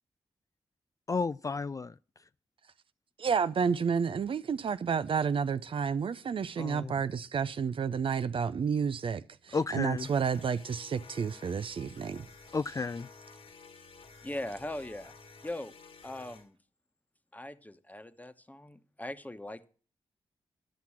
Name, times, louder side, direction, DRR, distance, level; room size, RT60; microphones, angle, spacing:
voice 1, 1.1-1.9 6.6-6.9 9.5-10.1 12.5-13.1, left 4 dB, 35° left, 0.4 m, -32 dB
voice 2, 3.2-12.2, right 6 dB, 55° right, 0.6 m, -30 dB
sound 1, 10.0-16.5, left 4 dB, 65° left, 2.0 m, -53 dB
voice 3, 14.2-15.1 15.4-15.7 16.0-16.6 17.3-19.7, left 1 dB, 15° left, 1.2 m, -40 dB
11.5 x 5.9 x 7.3 m
supercardioid pair, 40°, 10 cm